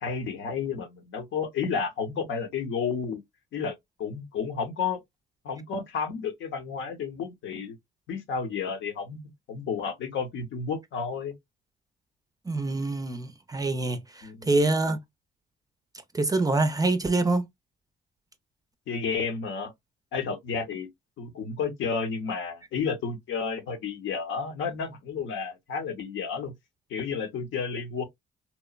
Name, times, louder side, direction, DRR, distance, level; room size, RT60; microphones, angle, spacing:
voice 1, 0.0-3.2 3.5-5.0 5.4-7.8 8.1-9.2 9.5-11.3 14.2-14.5 18.9-19.7 20.1-20.9 21.2-26.5 26.9-28.0, left 5 dB, 75° left, 0.8 m, -31 dB
voice 2, 12.5-15.0 16.1-17.5, right 2 dB, 20° right, 0.4 m, -25 dB
2.9 x 2.0 x 2.3 m
cardioid pair, 90°, 20 cm